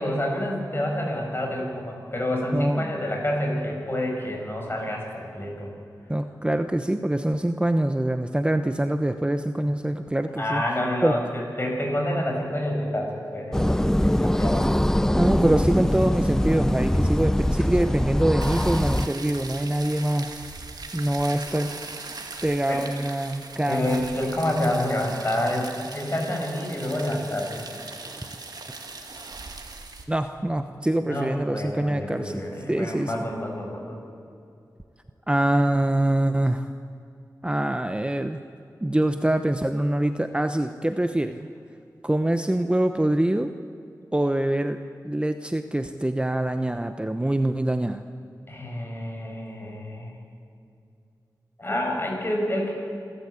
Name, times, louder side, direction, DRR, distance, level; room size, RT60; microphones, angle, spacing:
voice 1, 0.0-5.7 10.4-14.7 22.7-22.9 23.7-27.6 31.1-34.0 48.5-50.1 51.6-52.7, left 1 dB, 35° left, 0 dB, 6.7 m, -28 dB
voice 2, 2.5-3.0 6.1-10.6 11.0-11.1 15.2-20.4 20.9-21.8 22.4-24.0 30.1-33.3 35.3-36.7 37.4-38.4 38.8-41.5 42.0-43.5 44.1-44.8 45.0-48.0, right 1 dB, 15° right, 8 dB, 0.9 m, -24 dB
sound 1, 13.5-19.1, left 1 dB, 5° left, 0.6 m, -22 dB
sound 2, 18.4-30.0, right 3 dB, 65° right, 2.3 m, -40 dB
27.5 x 13.0 x 8.4 m, 2.6 s
wide cardioid pair, 65°, 7 cm